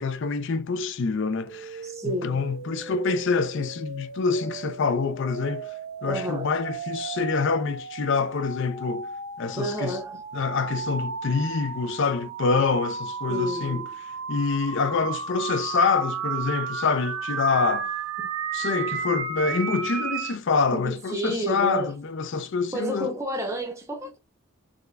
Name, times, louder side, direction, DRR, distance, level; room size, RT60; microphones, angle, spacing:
voice 1, 0.0-5.7 6.0-9.1 9.4-10.0 10.3-13.8 14.3-17.9 18.5-23.1, left 4 dB, 55° left, 0.4 m, -26 dB
sound 1, 1.5-20.4, right 5 dB, 70° right, 0.6 m, -34 dB
voice 2, 1.8-2.4 6.1-6.5 9.6-10.2 13.3-13.9 18.2-18.3 20.7-21.9 22.7-24.2, right 1 dB, 15° right, 0.7 m, -30 dB
3.6 x 3.2 x 2.2 m
head